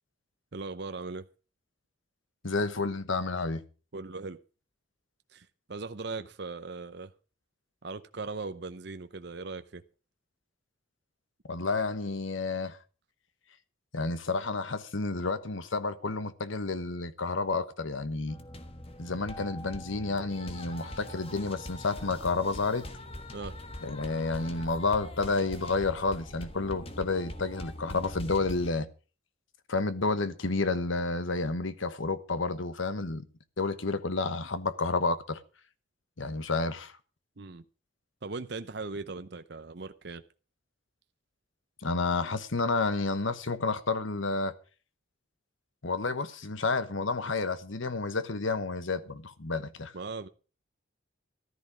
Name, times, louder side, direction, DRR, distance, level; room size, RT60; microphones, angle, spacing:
voice 1, 0.5-1.2 3.9-4.4 5.3-7.1 7.8-9.8 23.3-23.5 37.4-37.6 38.2-40.2 49.9-50.3, right 3 dB, 55° right, 0.7 m, -39 dB
voice 2, 2.4-3.6 11.5-12.8 13.9-18.4 19.0-22.9 23.8-28.9 29.7-33.2 33.6-35.4 36.2-36.9 41.8-44.5 45.8-49.9, left 3 dB, 75° left, 1.2 m, -30 dB
sound 1, 18.3-28.7, left 1 dB, 30° left, 1.3 m, -43 dB
14.0 x 12.5 x 4.9 m
head